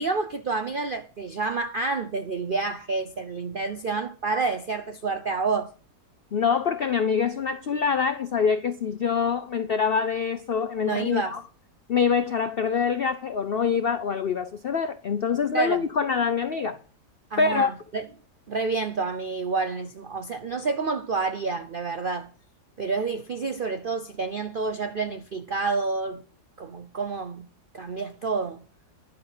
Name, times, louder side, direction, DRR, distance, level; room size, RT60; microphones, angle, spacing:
voice 1, 0.0-5.7 10.8-11.4 15.5-15.8 17.3-18.0 18.5-22.3 22.8-26.2 26.6-27.5 27.7-28.7, right 4 dB, 65° right, 0.5 m, -29 dB
voice 2, 6.3-11.4 11.9-16.8 17.4-17.7, left 6 dB, 75° left, 0.5 m, -25 dB
11.0 x 7.6 x 5.9 m
omnidirectional pair, 1.9 m